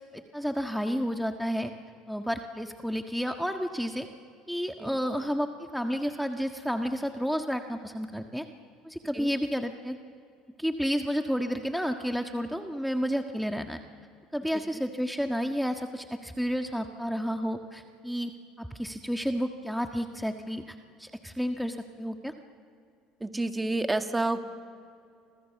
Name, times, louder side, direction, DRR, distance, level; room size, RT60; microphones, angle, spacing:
voice 1, 0.1-1.7 2.1-4.1 4.5-8.4 8.8-10.0 10.6-13.8 14.3-18.3 18.6-22.3, equal, ahead, 5 dB, 1.6 m, -31 dB
voice 2, 23.2-24.4, right 2 dB, 15° right, 7 dB, 2.0 m, -29 dB
30.0 x 26.5 x 7.2 m, 2.4 s
hypercardioid pair, 70°, 0 cm